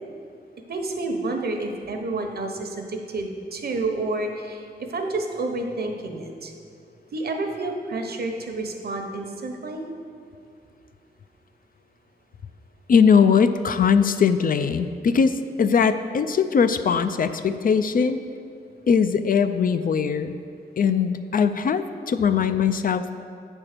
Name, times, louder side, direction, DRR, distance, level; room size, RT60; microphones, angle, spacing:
voice 1, 0.7-6.5 7.1-9.8, right 2 dB, 60° right, 4 dB, 0.9 m, -29 dB
voice 2, 12.9-18.2 18.9-20.4 20.8-23.1, left 6 dB, 55° left, 10 dB, 0.4 m, -20 dB
8.5 x 4.5 x 6.6 m, 2.4 s
wide cardioid pair, 90°, 18 cm